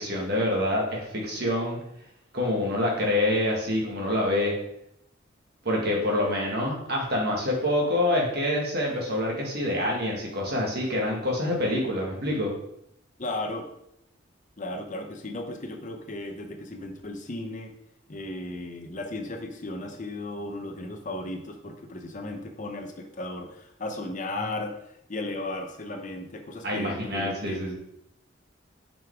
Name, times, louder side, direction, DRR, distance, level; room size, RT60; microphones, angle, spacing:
voice 1, 0.0-1.8 2.3-4.5 5.6-12.5 26.6-27.7, left 1 dB, 55° right, -2 dB, 2.0 m, -26 dB
voice 2, 13.2-13.6 14.6-17.7 18.1-27.7, left 2 dB, 40° left, 4 dB, 0.8 m, -35 dB
6.3 x 5.2 x 3.6 m, 0.77 s
head